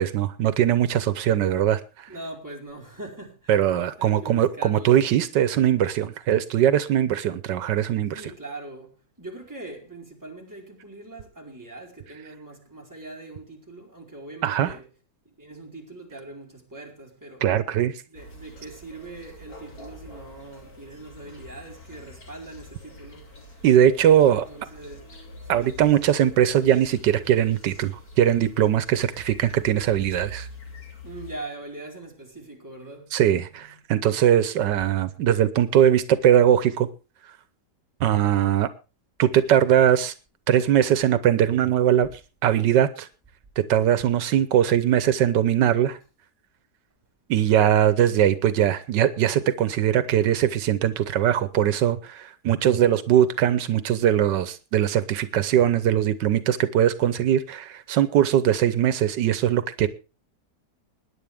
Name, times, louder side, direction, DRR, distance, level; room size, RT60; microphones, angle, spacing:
voice 1, 0.0-2.1 3.5-8.2 14.4-14.7 17.4-17.9 23.6-24.5 25.5-30.5 33.1-36.9 38.0-38.7 39.2-40.1 40.5-42.1 42.4-43.1 43.6-46.0 47.3-59.9, right 10 dB, 85° right, 1.5 m, -21 dB
voice 2, 2.1-3.6 4.0-5.0 8.1-14.9 15.2-17.5 18.1-23.3 24.3-25.1 25.4-25.8 31.0-33.1 33.5-33.8, right 2 dB, 10° right, 4.4 m, -41 dB
sound 1, 18.1-31.4, equal, 55° left, 3.5 m, -45 dB
21.5 x 10.0 x 3.5 m
omnidirectional pair, 1.8 m